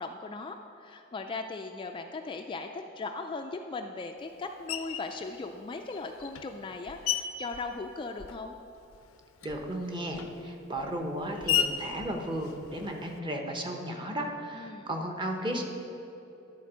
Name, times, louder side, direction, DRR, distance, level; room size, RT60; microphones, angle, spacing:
voice 1, 0.0-8.6 14.5-14.9, left 3 dB, 25° left, 4 dB, 0.3 m, -38 dB
Screech, 4.7-5.2 5.9-8.6 8.9-13.2, left 9 dB, 75° left, 0.5 m, -35 dB
voice 2, 9.4-15.6, right 1 dB, 25° right, 2 dB, 0.9 m, -34 dB
12.0 x 4.4 x 6.2 m, 2.9 s
head